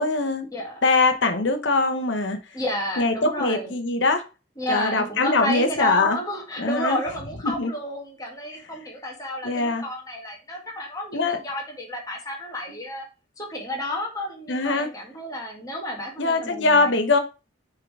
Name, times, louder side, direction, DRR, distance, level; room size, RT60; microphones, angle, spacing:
voice 1, 0.0-0.5 0.8-2.4 3.0-4.2 4.7-6.2 6.6-7.0 7.4-7.7 9.4-9.8 11.1-11.4 14.5-14.9 16.2-17.2, left 3 dB, 70° left, 1.0 m, -22 dB
voice 2, 2.5-3.7 4.6-13.1 13.4-17.0, left 1 dB, 20° left, 1.8 m, -31 dB
6.6 x 3.9 x 4.7 m
head